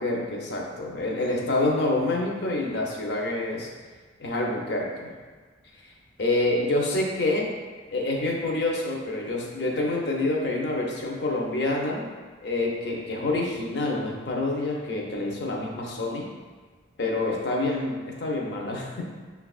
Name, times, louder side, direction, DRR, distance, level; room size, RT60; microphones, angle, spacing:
voice 1, 0.0-3.7 4.2-5.1 6.2-7.5 7.9-12.1 12.4-16.3 17.0-19.0, left 2 dB, 60° left, -1 dB, 0.6 m, -27 dB
6.4 x 2.3 x 2.3 m, 1.4 s
head